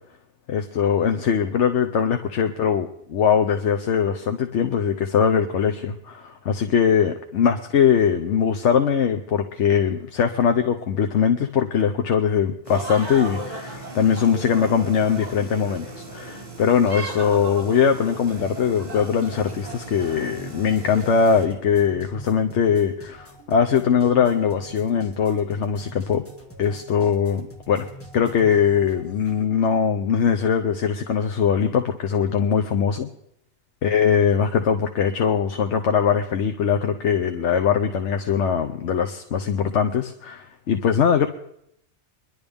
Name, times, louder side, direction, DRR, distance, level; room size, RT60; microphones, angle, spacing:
voice 1, 0.5-26.2 26.6-27.9 28.1-33.1 33.8-41.3, left 7 dB, 85° left, 6 dB, 1.1 m, -21 dB
sound 1, 12.7-21.5, right 2 dB, 35° right, 2.3 m, -36 dB
sound 2, 19.1-29.4, equal, 10° left, 2.0 m, -44 dB
23.5 x 11.5 x 3.5 m, 0.77 s
omnidirectional pair, 1.2 m